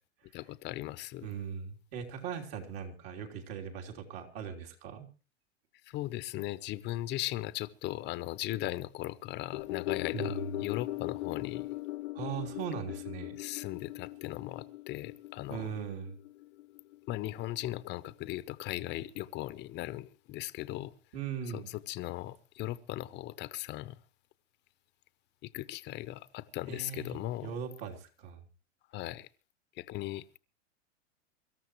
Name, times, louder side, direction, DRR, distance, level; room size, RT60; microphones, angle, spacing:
voice 1, 0.3-1.3 5.8-11.7 13.4-15.7 17.1-20.9 21.5-24.0 25.4-27.6 28.9-29.3 29.8-30.4, left 16 dB, 30° left, 0.8 m, -38 dB
voice 2, 1.2-5.1 10.1-10.6 12.1-13.4 15.5-16.2 21.1-21.7 26.7-28.4, right 7 dB, 60° right, 3.4 m, -39 dB
sound 1, 9.5-18.0 18.3-18.4, left 18 dB, 75° left, 0.7 m, -40 dB
24.0 x 13.5 x 3.1 m
hypercardioid pair, 130°, 36 cm